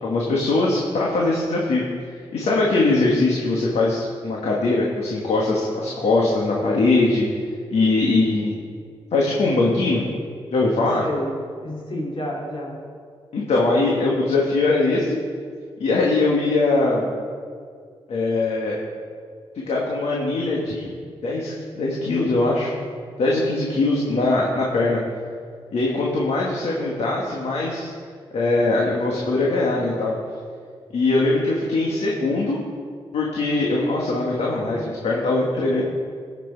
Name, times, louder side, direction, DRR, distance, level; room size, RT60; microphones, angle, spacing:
voice 1, 0.0-1.8 2.3-7.3 7.7-8.6 9.1-10.0 10.5-11.0 13.3-15.2 15.8-17.1 18.1-18.8 19.7-20.9 21.2-22.7 23.2-25.0 25.7-27.9 28.3-30.1 30.9-32.6 33.1-35.8, left 2 dB, 75° left, -3 dB, 1.6 m, -21 dB
voice 2, 10.8-11.3 11.6-12.8 35.4-35.8, left 1 dB, 55° left, -3 dB, 3.2 m, -30 dB
15.5 x 6.1 x 4.7 m, 2.1 s
cardioid pair, 60°, 11 cm